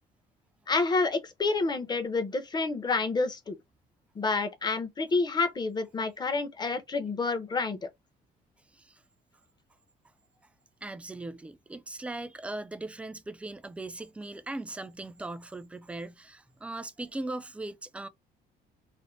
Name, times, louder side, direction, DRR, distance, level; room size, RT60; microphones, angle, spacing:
voice 1, 0.7-3.6 4.2-7.8, left 3 dB, 25° left, 0.6 m, -28 dB
voice 2, 10.8-18.1, right 2 dB, 5° right, 0.3 m, -39 dB
2.5 x 2.1 x 3.0 m
cardioid pair, 110°, 17 cm